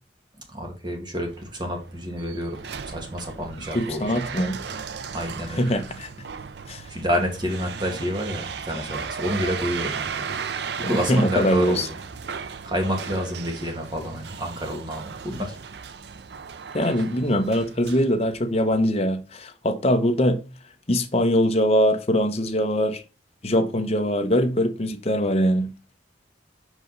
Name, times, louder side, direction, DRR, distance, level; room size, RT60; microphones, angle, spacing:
voice 1, 0.5-4.6 5.1-5.8 6.9-10.3 10.9-12.0 12.6-15.6, equal, 25° right, 1.9 m, -29 dB
sound 1, 1.3-18.8, right 6 dB, 60° right, 0.5 m, -36 dB
voice 2, 3.7-4.6 5.6-6.1 6.7-6.8 10.8-11.9 16.7-20.4 20.9-23.0 23.4-25.7, equal, 35° left, 0.9 m, -22 dB
5.3 x 5.0 x 3.8 m
head